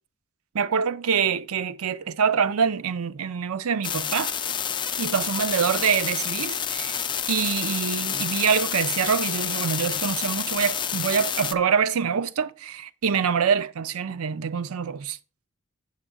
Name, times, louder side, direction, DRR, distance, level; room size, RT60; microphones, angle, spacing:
voice 1, 0.5-4.3 5.0-7.0 7.3-15.2, right 6 dB, 70° right, 0.5 m, -25 dB
sound 1, 3.8-11.5, left 8 dB, 20° left, 0.4 m, -29 dB
7.9 x 7.1 x 3.7 m
head